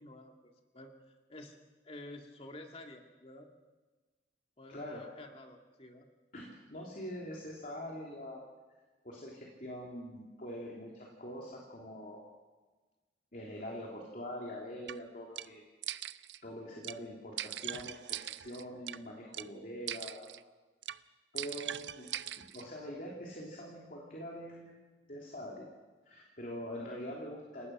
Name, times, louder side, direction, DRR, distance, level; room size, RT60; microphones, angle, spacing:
voice 1, 0.0-1.6 1.8-3.5 4.6-6.1, left 1 dB, 35° left, 3 dB, 2.2 m, -50 dB
voice 2, 4.7-5.0 6.3-8.4 9.0-12.2 13.3-15.6 16.4-20.3 21.3-22.1 22.5-24.8 25.1-25.7 26.0-27.7, equal, 50° left, -2 dB, 3.3 m, -44 dB
sound 1, 14.9-15.0 15.4-15.5 15.8-16.4 16.8-17.0 17.4-19.0 19.3-19.5 19.9-20.4 20.8-21.0 21.4-22.6, right 12 dB, 85° right, 0.6 m, -41 dB
28.5 x 18.5 x 6.1 m, 1.3 s
head